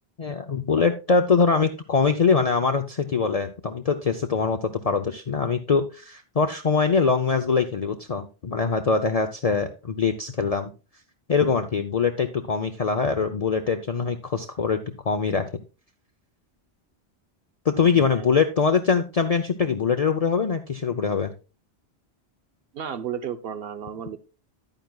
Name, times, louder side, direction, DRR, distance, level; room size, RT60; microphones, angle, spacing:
voice 1, 0.2-10.7 11.3-14.8 15.1-15.5 17.7-21.3, left 5 dB, 40° left, 6 dB, 0.6 m, -23 dB
voice 2, 22.7-24.2, right 8 dB, 65° right, 12 dB, 1.0 m, -33 dB
10.5 x 9.1 x 2.3 m, 0.32 s
omnidirectional pair, 1.1 m